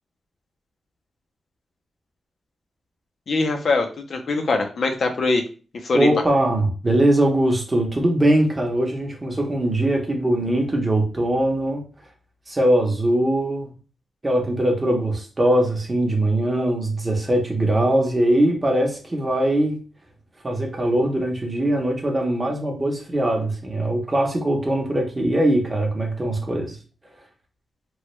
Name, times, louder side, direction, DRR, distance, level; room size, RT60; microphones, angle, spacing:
voice 1, 3.3-5.4 5.8-6.1, left 3 dB, 55° left, 5 dB, 0.5 m, -22 dB
voice 2, 5.9-11.8 12.5-13.7 14.2-19.7 20.4-26.8, right 1 dB, 20° right, 2 dB, 0.7 m, -21 dB
3.1 x 2.2 x 3.1 m, 0.36 s
wide cardioid pair, 145°, 0 cm